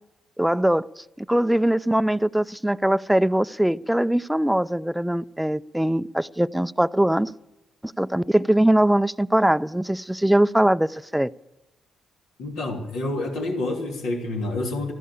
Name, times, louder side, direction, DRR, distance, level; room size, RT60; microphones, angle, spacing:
voice 1, 0.4-7.3 7.8-11.3, right 1 dB, 5° right, 0.5 m, -21 dB
voice 2, 12.4-14.9, left 2 dB, 75° left, 2.9 m, -28 dB
14.0 x 11.0 x 8.6 m
hypercardioid pair, 45°, 0 cm